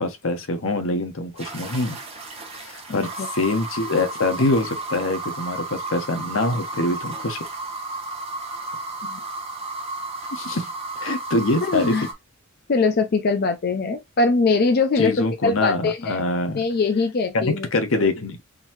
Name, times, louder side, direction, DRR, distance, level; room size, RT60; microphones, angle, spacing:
voice 1, 0.0-2.0 2.6-7.4 10.3-10.7 11.0-12.0 15.0-16.6 17.3-18.4, left 2 dB, 65° left, 0.8 m, -24 dB
sound 1, 1.4-12.1, right 3 dB, 25° right, 0.9 m, -33 dB
voice 2, 2.9-3.3 9.0-9.2 11.6-12.1 12.7-16.2 16.6-17.7, left 4 dB, 45° left, 0.4 m, -22 dB
3.8 x 2.7 x 2.9 m
head